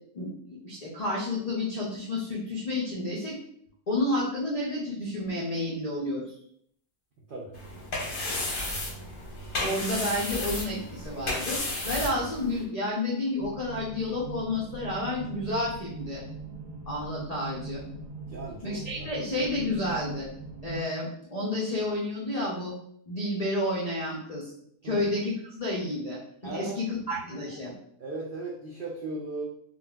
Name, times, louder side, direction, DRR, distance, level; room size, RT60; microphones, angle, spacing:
voice 1, 0.6-3.4 3.9-6.3 9.6-11.6 11.8-16.2 16.9-17.8 18.6-20.3 20.6-22.7 23.1-24.5 24.8-27.7, left 1 dB, 65° left, -5 dB, 0.3 m, -30 dB
sound 1, 7.5-12.6, left 1 dB, 45° left, 0.8 m, -33 dB
sound 2, 13.4-20.8, right 3 dB, 65° right, 1.5 m, -41 dB
voice 2, 18.3-19.1 24.8-25.1 26.4-26.8 27.3-29.4, right 2 dB, 80° right, -4 dB, 0.4 m, -38 dB
3.8 x 2.3 x 2.3 m, 0.67 s
omnidirectional pair, 1.6 m